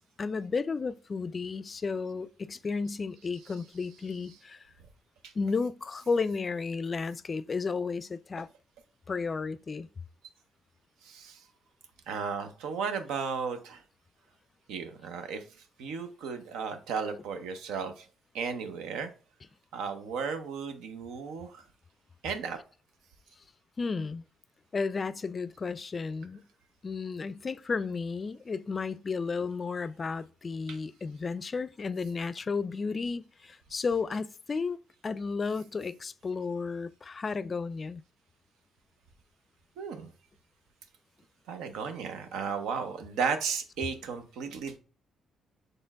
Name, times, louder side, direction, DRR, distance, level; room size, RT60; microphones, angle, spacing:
voice 1, 0.2-4.6 5.4-8.5 9.1-9.9 23.8-24.2 24.7-26.4 26.8-34.8 35.0-38.0, left 4 dB, 40° left, 0.3 m, -33 dB
voice 2, 3.9-4.4 5.2-5.3 11.0-11.4 12.1-13.8 14.7-15.4 15.8-18.1 18.3-19.1 19.7-21.6 22.2-22.6 30.7-30.8 39.8-40.1 41.5-44.8, right 6 dB, 85° right, 0.7 m, -35 dB
4.3 x 3.2 x 3.4 m
supercardioid pair, 65°, 0 cm